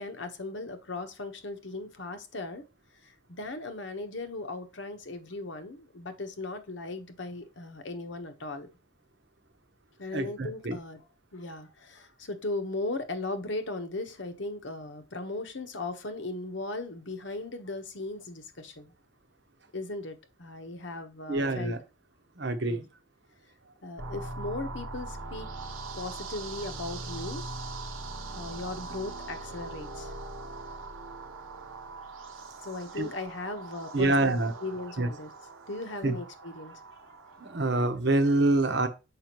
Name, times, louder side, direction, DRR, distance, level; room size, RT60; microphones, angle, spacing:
voice 1, 0.0-2.7 3.0-8.7 10.0-11.0 11.3-18.9 19.7-21.7 22.6-22.8 23.8-25.5 25.9-27.4 28.3-30.1 32.6-35.3 35.7-36.8 37.1-37.2, left 2 dB, 65° left, 1.1 m, -37 dB
voice 2, 10.1-10.8 21.3-21.8 22.4-22.8 33.0-33.1 33.9-34.5 35.0-35.1 36.0-36.2 37.4-38.9, right 2 dB, 60° right, 0.9 m, -26 dB
sound 1, 24.0-37.9, right 2 dB, 85° right, 1.0 m, -41 dB
6.9 x 5.2 x 3.0 m
head